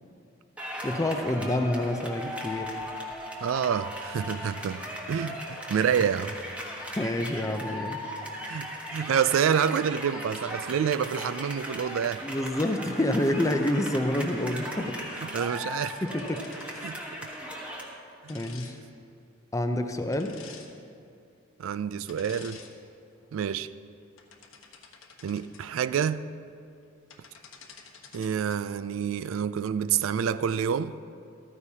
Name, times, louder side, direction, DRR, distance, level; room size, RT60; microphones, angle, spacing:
sound 1, 0.6-17.8, equal, 5° right, 1.2 m, -38 dB
voice 1, 0.8-2.8 6.8-8.0 12.2-15.3 16.0-16.9 18.3-18.8 19.5-20.4, left 1 dB, 15° left, 0.6 m, -28 dB
voice 2, 3.4-6.4 8.5-12.2 15.2-16.0 16.8-17.0 21.6-22.6 23.3-23.7 25.2-26.3 28.1-31.0, right 8 dB, 75° right, 0.3 m, -28 dB
sound 2, 15.8-17.0 18.3-18.7 20.1-20.7 22.1-22.7 23.2-23.4 24.0-25.6 26.8-26.9 27.1-28.6, left 6 dB, 90° left, 1.1 m, -50 dB
14.5 x 13.5 x 2.8 m
head